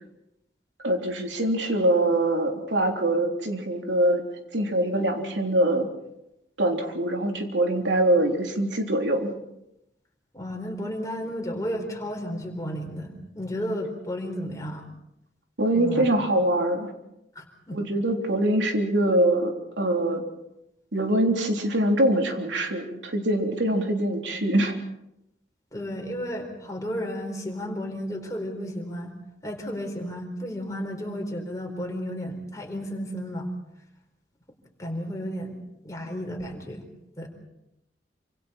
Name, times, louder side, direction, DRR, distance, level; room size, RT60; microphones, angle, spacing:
voice 1, 0.8-4.2 4.5-5.9 6.6-9.3 15.6-16.9 17.7-20.2 20.9-24.8, right 1 dB, 85° right, 2 dB, 3.5 m, -24 dB
voice 2, 10.3-14.9 15.7-16.1 17.3-17.8 25.7-29.1 29.4-33.5 34.8-35.6 35.8-36.8 37.2-37.3, equal, 20° left, 1 dB, 4.3 m, -33 dB
27.5 x 26.0 x 4.4 m, 0.85 s
head